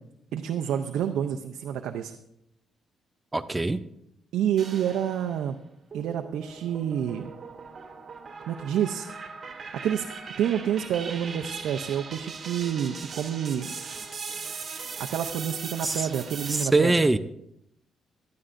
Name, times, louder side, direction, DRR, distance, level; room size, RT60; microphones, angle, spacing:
voice 1, 0.3-2.2 4.3-5.6 5.9-7.2 8.5-9.1 9.8-10.1 10.4-13.7 15.0-16.9, right 9 dB, 80° right, 4 dB, 0.5 m, -28 dB
voice 2, 3.3-3.8 15.8-16.1 16.5-17.2, right 2 dB, 15° right, 10 dB, 0.5 m, -23 dB
sound 1, 4.6-5.4 5.9-16.6, right 5 dB, 40° right, 2.0 m, -39 dB
16.0 x 11.5 x 2.6 m, 0.79 s
cardioid pair, 90°, 0 cm